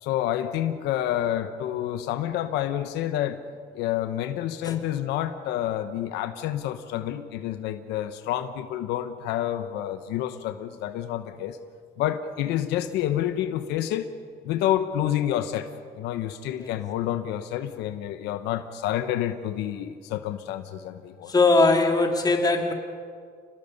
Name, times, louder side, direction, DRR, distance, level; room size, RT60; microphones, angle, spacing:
voice 1, 0.0-3.4 3.7-11.6 12.0-14.1 14.4-15.7 16.0-21.3, left 11 dB, 90° left, 9 dB, 1.1 m, -28 dB
voice 2, 21.3-22.7, left 3 dB, 25° left, 3 dB, 2.8 m, -20 dB
29.5 x 19.0 x 5.4 m, 2.1 s
cardioid pair, 110°, 17 cm